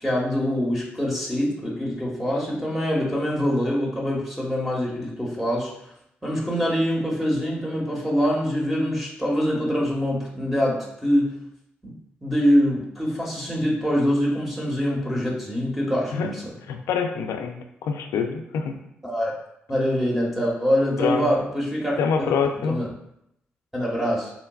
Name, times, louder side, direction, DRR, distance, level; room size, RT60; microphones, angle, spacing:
voice 1, 0.0-5.7 6.2-11.4 11.8-11.9 12.2-16.5 19.0-19.3 19.7-22.0 22.7-22.9 23.7-24.3, equal, 5° right, -3 dB, 1.0 m, -24 dB
voice 2, 16.7-17.6 17.8-18.7 21.0-21.3 22.0-22.8, left 6 dB, 80° left, 6 dB, 0.3 m, -25 dB
3.9 x 2.2 x 2.3 m, 0.77 s
supercardioid pair, 50°, 5 cm